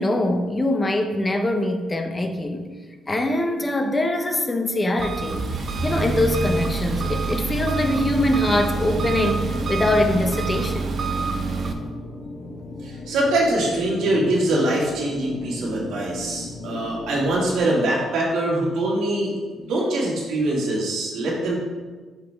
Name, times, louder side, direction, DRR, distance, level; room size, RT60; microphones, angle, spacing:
voice 1, 0.0-2.7 3.1-10.9, left 1 dB, 25° left, 5 dB, 0.7 m, -23 dB
Engine, 5.0-11.7, right 4 dB, 50° right, 0.7 m, -26 dB
sound 1, 5.9-17.6, left 2 dB, 45° left, 1.0 m, -36 dB
voice 2, 12.8-21.6, right 1 dB, 85° right, -4 dB, 2.1 m, -23 dB
7.4 x 5.2 x 3.4 m, 1.4 s
cardioid pair, 90°, 0 cm